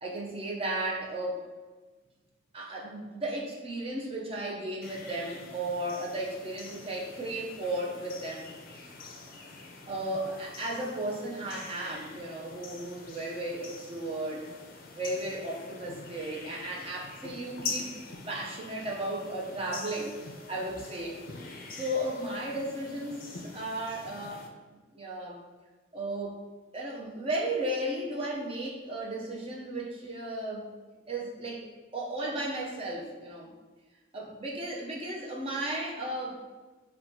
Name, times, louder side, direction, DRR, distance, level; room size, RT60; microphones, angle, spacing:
voice 1, 0.0-1.4 2.5-8.5 9.9-14.5 15.0-17.9 18.3-20.2 20.5-21.2 21.7-24.5 24.9-25.4 25.9-26.4 26.7-30.7 31.1-31.6 31.9-33.5 34.1-36.4, right 1 dB, 25° right, -2 dB, 0.5 m, -35 dB
sound 1, 4.8-24.5, left 3 dB, 45° left, 0.4 m, -45 dB
6.0 x 2.2 x 2.6 m, 1.3 s
head